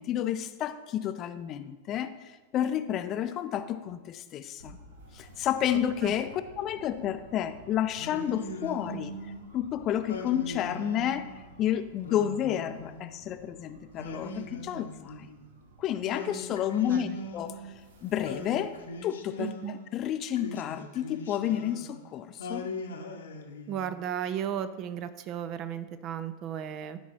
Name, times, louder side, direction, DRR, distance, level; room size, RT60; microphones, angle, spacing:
voice 1, 0.0-2.1 2.5-4.8 5.1-9.1 9.5-11.3 11.6-15.3 15.8-17.6 18.0-18.7 19.0-19.5 19.9-22.7, left 10 dB, 35° left, 11 dB, 0.5 m, -30 dB
sound 1, 4.6-19.0, right 2 dB, 60° right, 1.2 m, -54 dB
Singing, 8.0-9.4 10.1-11.4 12.0-13.3 14.0-15.5 16.1-17.8 18.2-19.9 20.4-22.0 22.4-24.0, left 1 dB, 65° left, 1.0 m, -41 dB
voice 2, 19.4-19.7 23.7-27.0, right 9 dB, 35° right, 12 dB, 0.5 m, -35 dB
12.5 x 5.6 x 4.2 m, 1.2 s
figure-of-eight pair, 90°, 0 cm